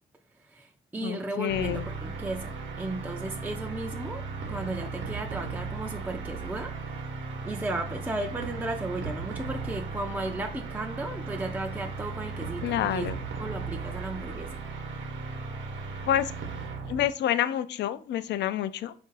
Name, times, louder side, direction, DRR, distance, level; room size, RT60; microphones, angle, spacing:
voice 1, 0.4-7.1 7.4-13.1 13.4-14.6, right 2 dB, 10° right, 3 dB, 0.4 m, -35 dB
voice 2, 1.0-1.9 12.6-13.2 16.1-16.3 16.9-18.9, left 11 dB, 65° left, 14 dB, 0.4 m, -28 dB
sound 1, 1.5-17.1, right 4 dB, 70° right, 0.9 m, -36 dB
4.4 x 2.6 x 4.0 m, 0.43 s
cardioid pair, 90°, 20 cm